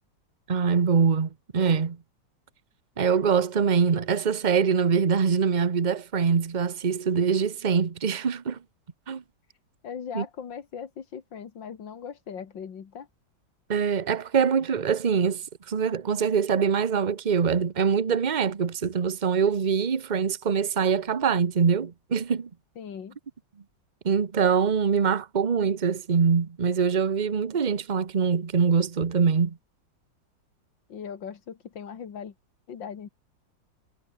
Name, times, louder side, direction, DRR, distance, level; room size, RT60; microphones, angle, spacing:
voice 1, 0.5-2.0 3.0-8.6 9.1-9.2 10.1-10.2 13.7-22.5 24.0-29.6, right 6 dB, 30° right, 1.0 m, -24 dB
voice 2, 9.8-13.1 22.8-23.2 30.9-32.3 32.7-33.1, left 7 dB, 80° left, 2.5 m, -39 dB
omnidirectional pair, 2.0 m